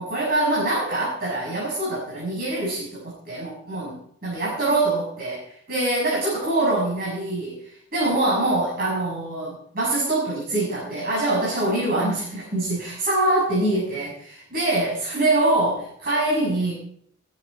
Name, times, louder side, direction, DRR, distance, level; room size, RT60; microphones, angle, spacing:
voice 1, 0.0-4.0 4.2-5.4 5.7-16.7, right 2 dB, 50° right, -4 dB, 6.7 m, -24 dB
22.0 x 10.5 x 4.4 m, 0.68 s
head